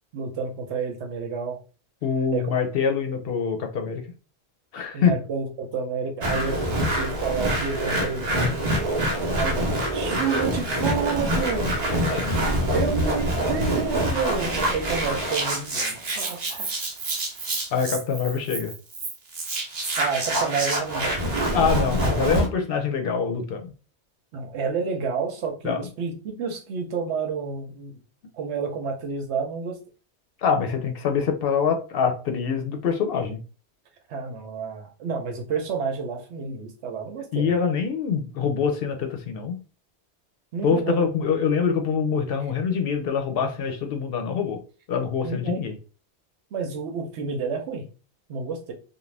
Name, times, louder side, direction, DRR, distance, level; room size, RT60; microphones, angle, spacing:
voice 1, 0.1-1.6 2.3-2.4 4.9-8.5 9.3-11.7 12.7-16.7 20.0-21.4 24.3-28.0 28.3-29.8 34.1-37.5 40.5-41.1 45.2-45.6 46.5-47.8 48.3-48.7, right 5 dB, 80° right, 1.0 m, -30 dB
voice 2, 2.0-4.0 4.7-5.1 11.8-12.2 17.7-18.7 21.5-23.7 25.6-25.8 30.4-33.4 37.3-39.6 40.6-44.6 44.9-45.7, left 6 dB, 65° left, 0.7 m, -25 dB
sound 1, 6.2-22.5, right 1 dB, 45° right, 0.7 m, -26 dB
2.4 x 2.3 x 3.2 m
omnidirectional pair, 1.1 m